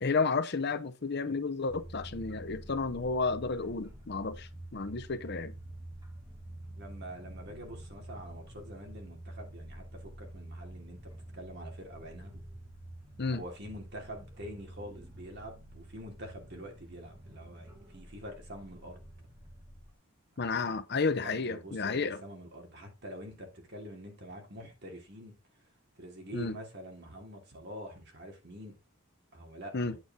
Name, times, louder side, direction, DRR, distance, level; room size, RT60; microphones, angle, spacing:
voice 1, 0.0-5.5 13.2-13.4 20.4-22.2 26.3-26.6 29.7-30.0, left 4 dB, 50° left, 0.7 m, -32 dB
sound 1, 1.7-19.9, right 1 dB, 20° right, 2.3 m, -48 dB
voice 2, 6.8-12.4 13.3-19.0 20.4-20.7 21.2-25.7 25.9-28.8 29.3-30.0, equal, 50° right, 2.9 m, -46 dB
8.9 x 6.8 x 3.7 m
head